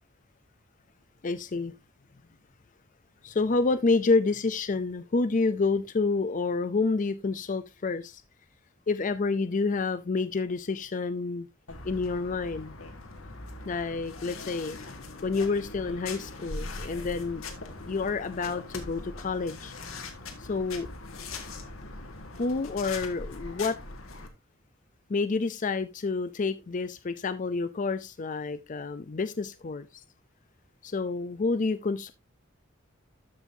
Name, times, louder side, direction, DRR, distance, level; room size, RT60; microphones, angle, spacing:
voice 1, 1.2-1.7 3.2-8.2 8.9-11.5 11.8-12.8 13.7-14.8 15.2-17.4 17.9-19.7 20.4-20.9 22.4-23.8 25.1-29.9 30.8-32.1, left 3 dB, 40° left, 0.5 m, -28 dB
sound 1, 11.7-24.3, left 3 dB, 85° left, 1.7 m, -41 dB
13.0 x 5.5 x 2.7 m
head